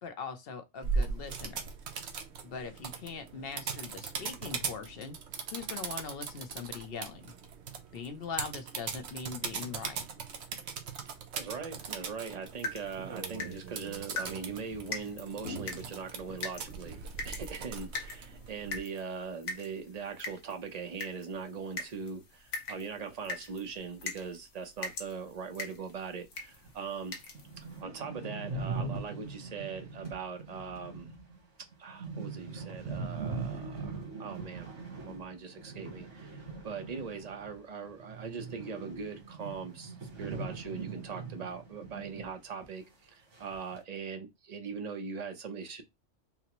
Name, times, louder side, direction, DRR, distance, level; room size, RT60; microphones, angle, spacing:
voice 1, 0.0-1.7 2.4-5.2 5.5-7.3 7.9-10.0, left 5 dB, 60° left, 0.8 m, -41 dB
sound 1, 0.8-18.8, right 5 dB, 70° right, 1.0 m, -39 dB
voice 2, 11.3-27.1 27.8-31.1 31.8-34.7 35.0-45.8, right 5 dB, 40° right, 0.7 m, -41 dB
sound 2, 12.4-27.8, left 3 dB, 85° left, 1.3 m, -43 dB
sound 3, 26.7-26.8 27.1-27.2 27.3-37.6 37.8-42.3 42.6-42.7 43.3-43.8, right 4 dB, 90° right, 1.6 m, -41 dB
5.7 x 2.0 x 3.0 m
omnidirectional pair, 1.2 m